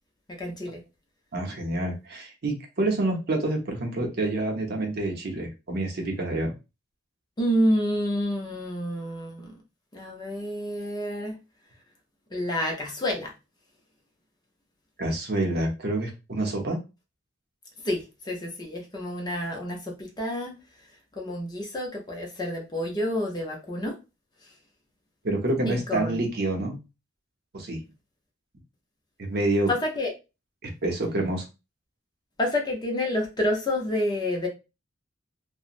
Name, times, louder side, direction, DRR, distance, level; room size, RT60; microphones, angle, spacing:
voice 1, 0.4-0.8 7.4-9.5 9.9-11.4 12.3-13.3 17.8-20.6 21.2-24.0 25.7-26.2 29.7-30.1 32.4-34.5, left 1 dB, 20° left, 0 dB, 0.5 m, -28 dB
voice 2, 1.3-6.5 15.0-16.8 25.2-26.8 27.5-27.8 29.2-29.7 30.6-31.4, right 2 dB, 55° right, 2 dB, 0.7 m, -27 dB
2.9 x 2.1 x 2.4 m, 0.27 s
head